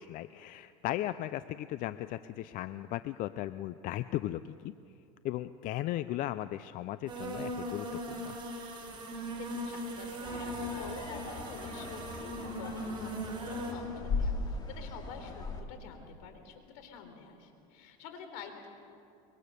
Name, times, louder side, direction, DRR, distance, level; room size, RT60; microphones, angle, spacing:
voice 1, 0.0-4.7 5.2-8.4, left 14 dB, 45° left, 13 dB, 0.5 m, -36 dB
sound 1, 7.1-13.7, equal, 25° right, 5.7 m, -39 dB
voice 2, 9.3-18.7, left 6 dB, 70° left, 6 dB, 4.0 m, -48 dB
sound 2, 10.2-15.6, left 3 dB, 20° left, 2.6 m, -38 dB
25.0 x 22.5 x 6.8 m, 2.6 s
supercardioid pair, 125°, 19 cm